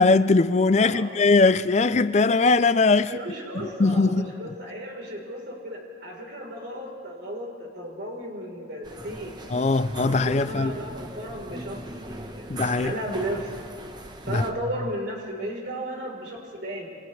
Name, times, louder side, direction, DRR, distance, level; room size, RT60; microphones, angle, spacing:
voice 1, 0.0-3.2 3.8-4.3 9.5-10.7 12.5-12.9 14.3-14.4, left 3 dB, 35° left, 0.5 m, -20 dB
voice 2, 0.8-1.1 3.0-9.4 10.0-12.5 12.8-13.5 14.2-17.0, right 1 dB, 60° right, 4.0 m, -34 dB
sound 1, 8.8-14.5, right 1 dB, 20° right, 1.1 m, -38 dB
29.0 x 27.0 x 3.3 m
head